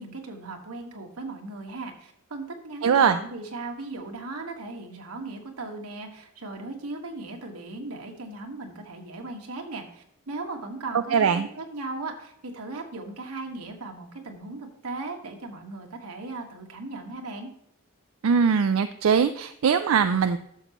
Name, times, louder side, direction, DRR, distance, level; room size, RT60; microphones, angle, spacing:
voice 1, 0.0-17.5, right 2 dB, 90° right, 3 dB, 1.5 m, -37 dB
voice 2, 2.8-3.2 11.1-11.5 18.2-20.4, right 6 dB, 70° right, 10 dB, 0.4 m, -21 dB
12.0 x 6.7 x 3.0 m, 0.74 s
head